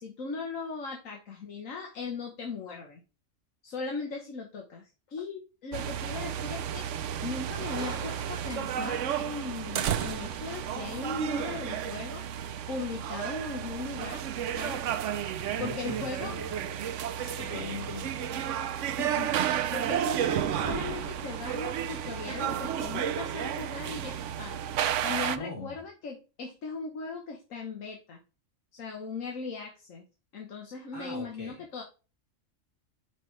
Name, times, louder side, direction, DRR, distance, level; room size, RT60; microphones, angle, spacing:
voice 1, 0.0-3.0 3.6-6.9 7.2-12.2 12.7-14.2 14.5-15.0 15.6-16.4 19.0-24.6 25.0-28.2 28.7-30.0 30.3-31.8, left 4 dB, 80° left, 1 dB, 1.5 m, -38 dB
sound 1, 5.7-25.4, right 9 dB, 70° right, 0.9 m, -32 dB
Crushing, 7.8-11.1 11.6-11.7, right 4 dB, 40° right, 1.2 m, -46 dB
voice 2, 15.4-18.4 25.3-25.8 30.9-31.6, left 3 dB, 60° left, -1 dB, 3.7 m, -42 dB
6.7 x 6.0 x 3.2 m, 0.32 s
omnidirectional pair, 1.3 m